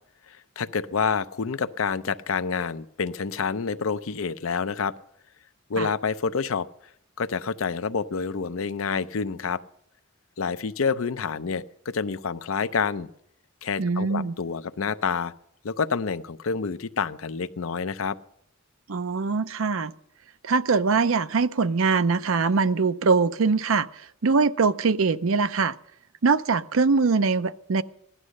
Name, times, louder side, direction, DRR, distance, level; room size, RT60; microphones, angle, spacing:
voice 1, 0.3-4.9 5.7-6.7 7.2-9.6 10.4-13.1 13.6-15.3 15.6-18.2, left 5 dB, 75° left, 0.6 m, -28 dB
voice 2, 13.8-14.3 18.9-19.9 20.4-23.9 24.2-25.7 26.2-27.8, right 4 dB, 75° right, 0.6 m, -22 dB
16.5 x 11.5 x 6.4 m
head